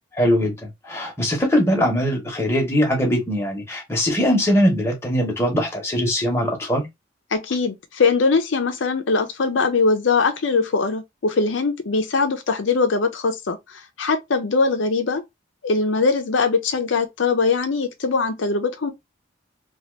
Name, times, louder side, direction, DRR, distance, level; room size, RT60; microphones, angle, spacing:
voice 1, 0.1-6.9, equal, 15° left, 0.9 m, -21 dB
voice 2, 7.3-15.2 15.6-18.9, left 4 dB, 80° left, 0.6 m, -21 dB
2.8 x 2.4 x 3.0 m
head